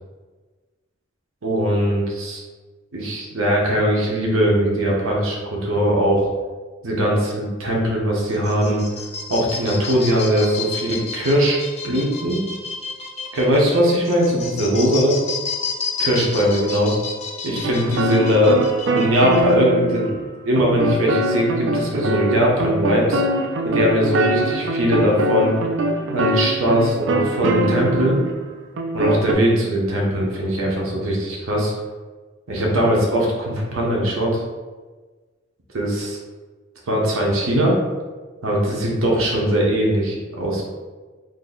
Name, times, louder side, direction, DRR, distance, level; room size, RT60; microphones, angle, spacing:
voice 1, 1.4-2.4 2.9-6.3 6.8-8.8 9.3-11.6 11.8-12.4 13.3-15.1 16.0-16.9 17.4-23.2 23.6-25.6 26.1-28.2 28.9-31.7 32.5-34.4 35.7-36.2 36.9-37.8 38.4-40.6, equal, 85° right, -2 dB, 0.8 m, -20 dB
sound 1, 8.3-19.6, left 5 dB, 30° left, 0.4 m, -31 dB
sound 2, 17.6-20.2 20.6-28.4 28.8-29.3, right 1 dB, 60° right, 0.4 m, -23 dB
2.6 x 2.6 x 3.9 m, 1.3 s
head